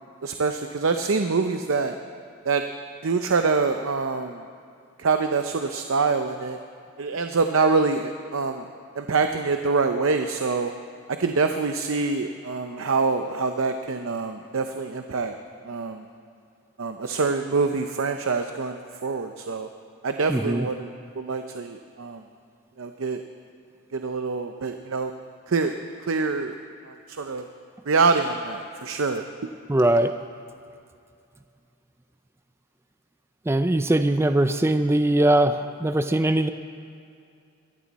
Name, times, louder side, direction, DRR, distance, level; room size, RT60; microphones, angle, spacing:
voice 1, 0.2-2.0 2.4-2.6 3.0-4.4 5.0-6.6 7.0-8.7 8.9-10.7 11.2-15.3 15.6-16.1 16.8-19.7 20.0-20.9 21.2-22.2 22.8-23.2 23.9-25.1 25.5-25.7 26.0-26.6 26.9-27.5 27.9-29.2, right 4 dB, 65° right, 6 dB, 0.6 m, -25 dB
voice 2, 20.3-20.7 29.7-30.1 33.5-36.5, right 1 dB, 10° right, 9 dB, 0.3 m, -21 dB
21.5 x 15.0 x 4.2 m, 2.4 s
head